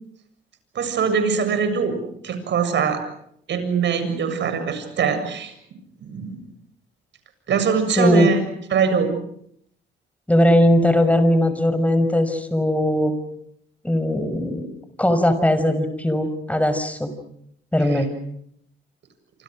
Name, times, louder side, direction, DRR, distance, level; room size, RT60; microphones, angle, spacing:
voice 1, 0.7-2.0 2.2-3.0 3.5-5.5 6.1-6.4 7.5-8.4 8.7-9.1 17.8-18.0, right 6 dB, 65° right, 8 dB, 7.5 m, -22 dB
voice 2, 8.0-8.3 10.3-13.1 13.8-14.7 15.0-17.1 17.7-18.1, left 1 dB, 5° left, 10 dB, 5.8 m, -19 dB
27.5 x 27.0 x 6.5 m, 0.70 s
cardioid pair, 90°, 20 cm